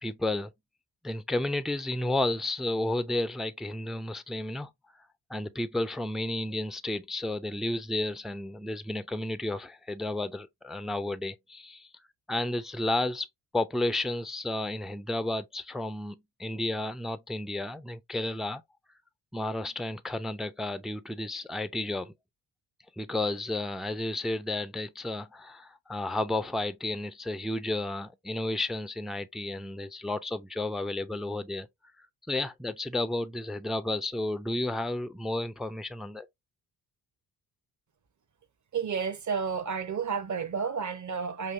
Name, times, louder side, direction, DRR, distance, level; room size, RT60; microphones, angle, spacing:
voice 1, 0.0-0.5 1.0-4.7 5.3-11.9 12.3-13.3 13.5-18.6 19.3-22.1 23.0-31.7 32.0-36.3, left 2 dB, ahead, 0.5 m, -32 dB
voice 2, 38.7-41.5, right 6 dB, 35° right, 0.9 m, -31 dB
5.4 x 2.6 x 2.5 m
hypercardioid pair, 45°, 48 cm